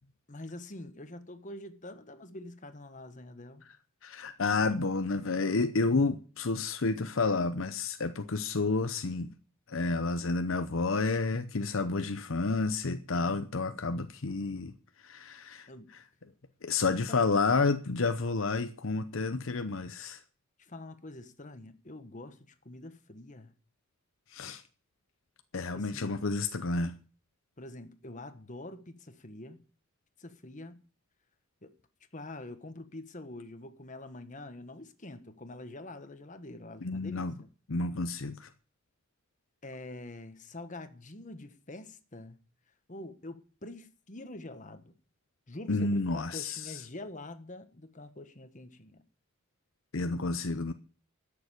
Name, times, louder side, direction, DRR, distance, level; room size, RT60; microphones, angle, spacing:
voice 1, 0.3-3.6 15.7-15.9 16.8-17.4 20.6-23.5 25.7-26.2 27.6-29.6 30.2-30.8 31.6-31.7 32.1-37.5 39.6-42.4 42.9-44.9 45.5-49.0, left 2 dB, 35° left, 1.4 m, -45 dB
voice 2, 4.0-9.3 9.7-14.7 15.1-15.7 16.6-20.2 24.3-24.6 25.5-26.9 36.8-37.3 37.7-38.5 45.7-46.6 49.9-50.7, left 3 dB, 70° left, 0.8 m, -30 dB
13.0 x 7.0 x 8.3 m
head